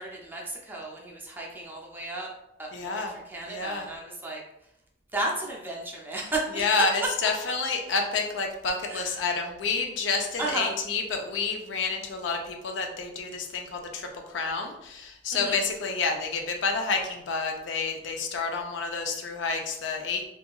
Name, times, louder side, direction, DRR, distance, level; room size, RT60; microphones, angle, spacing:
voice 1, 0.0-2.3 2.6-3.0 3.3-4.4 5.1-6.6 8.9-9.1 10.4-10.7 15.3-15.6, right 2 dB, 10° right, -2 dB, 0.4 m, -33 dB
voice 2, 2.7-3.1 3.5-3.9 6.5-20.3, left 4 dB, 75° left, 3 dB, 0.4 m, -29 dB
2.7 x 2.3 x 2.3 m, 0.83 s
head